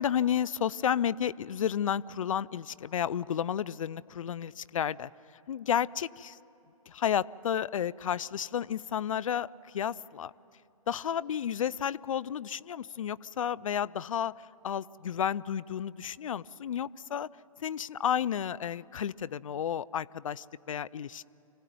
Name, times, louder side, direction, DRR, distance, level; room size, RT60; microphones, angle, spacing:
voice 1, 0.0-5.1 5.5-6.4 6.9-9.5 9.7-10.3 10.9-14.3 14.6-17.3 17.6-21.3, left 9 dB, 65° left, 20 dB, 0.5 m, -31 dB
26.0 x 17.0 x 9.3 m, 2.8 s
figure-of-eight pair, 130°, 18 cm